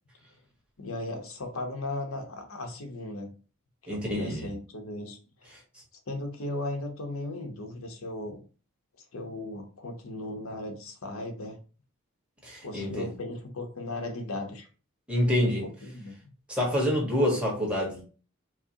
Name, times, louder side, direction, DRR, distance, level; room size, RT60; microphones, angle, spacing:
voice 1, 0.8-3.3 3.8-5.6 6.1-8.4 9.1-11.6 12.6-14.7 15.4-16.1, left 2 dB, 85° left, 4 dB, 0.9 m, -37 dB
voice 2, 3.9-4.5 12.4-13.1 15.1-15.6 16.5-18.0, left 1 dB, 5° right, -3 dB, 1.3 m, -27 dB
4.7 x 2.1 x 2.8 m, 0.37 s
head